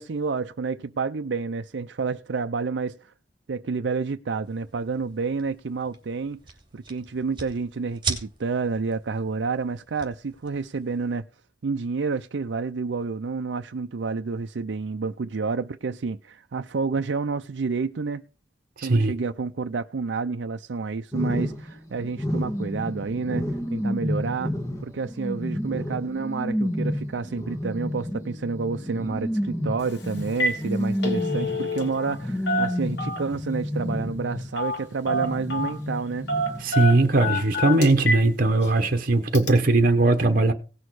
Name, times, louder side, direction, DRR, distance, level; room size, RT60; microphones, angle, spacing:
voice 1, 0.0-3.1 3.5-6.4 6.7-11.2 11.6-18.2 18.8-23.5 23.7-24.5 24.8-36.3, right 4 dB, 65° right, 0.5 m, -29 dB
sound 1, 4.4-11.1, right 4 dB, 25° right, 2.8 m, -39 dB
voice 2, 18.8-19.1 36.6-40.5, right 2 dB, 50° right, 1.0 m, -19 dB
sound 2, 21.1-34.7 35.0-36.9 37.2-37.3, equal, 15° left, 1.8 m, -30 dB
Telephone, 29.8-30.0 30.3-30.6 30.9-32.2 32.5-33.4 34.6-34.8 35.1-35.8 36.3-38.3 38.6-38.7 39.3-39.5, left 1 dB, 65° left, 2.3 m, -27 dB
17.5 x 6.4 x 4.7 m
head